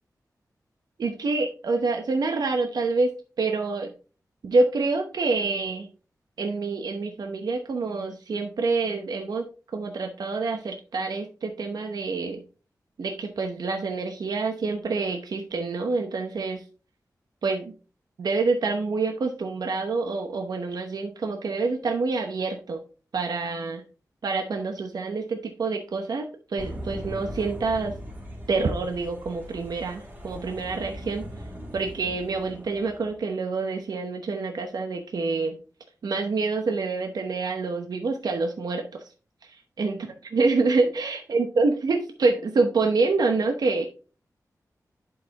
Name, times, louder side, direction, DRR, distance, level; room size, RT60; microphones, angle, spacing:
voice 1, 1.0-3.1 3.4-3.9 4.4-5.9 6.4-9.4 9.7-12.4 13.0-16.6 17.4-17.7 18.2-22.8 23.1-23.8 24.2-28.0 28.5-31.2 31.7-35.6 36.0-38.8 39.4-40.0 40.3-43.9, right 3 dB, 80° right, 4 dB, 0.9 m, -27 dB
sound 1, 26.6-33.2, equal, 25° right, 2.7 m, -40 dB
11.0 x 4.7 x 2.9 m, 0.35 s
wide cardioid pair, 115°, 7 cm